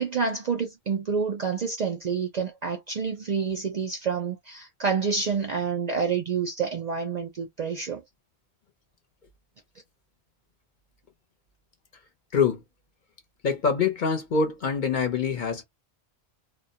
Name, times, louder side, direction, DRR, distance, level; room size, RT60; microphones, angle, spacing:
voice 1, 0.0-8.0, right 5 dB, 55° right, 0.5 m, -28 dB
voice 2, 12.3-12.6 13.4-15.6, left 5 dB, 50° left, 0.7 m, -25 dB
2.2 x 2.1 x 2.6 m
omnidirectional pair, 1.1 m